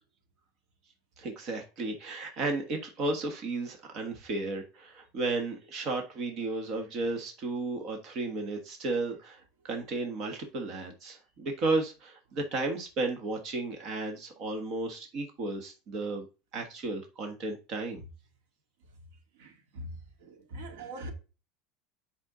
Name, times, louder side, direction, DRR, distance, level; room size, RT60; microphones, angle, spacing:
voice 1, 1.2-16.3 16.5-18.0, right 2 dB, 35° right, 1.4 m, -33 dB
voice 2, 19.4-19.9 20.2-21.1, right 1 dB, 80° right, 2.3 m, -42 dB
8.2 x 5.5 x 3.8 m
supercardioid pair, 175°, 0 cm